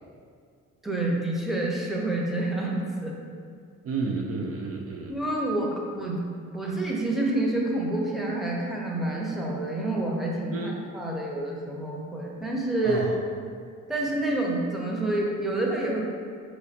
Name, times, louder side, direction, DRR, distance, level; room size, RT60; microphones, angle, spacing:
voice 1, 0.8-3.1 5.1-6.2 6.5-13.0 13.9-16.0, right 2 dB, ahead, -3 dB, 0.7 m, -28 dB
voice 2, 3.8-5.1 10.5-10.8 12.8-13.2, right 4 dB, 50° right, 0 dB, 0.4 m, -31 dB
4.9 x 3.1 x 2.8 m, 2.2 s
cardioid pair, 90°, 30 cm